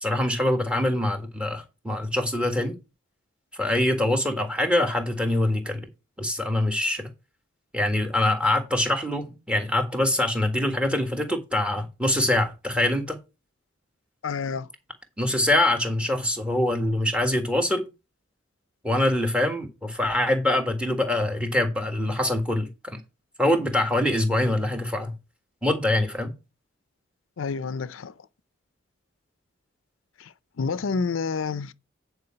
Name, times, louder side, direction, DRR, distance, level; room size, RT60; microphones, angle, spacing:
voice 1, 0.0-2.8 3.5-5.9 6.2-7.1 7.7-13.2 15.2-17.8 18.8-23.0 23.4-25.1 25.6-26.3, left 1 dB, 5° right, 1.6 m, -24 dB
voice 2, 14.2-14.7 27.4-28.1 30.2-31.7, left 5 dB, 85° left, 0.5 m, -29 dB
9.6 x 4.7 x 5.8 m
head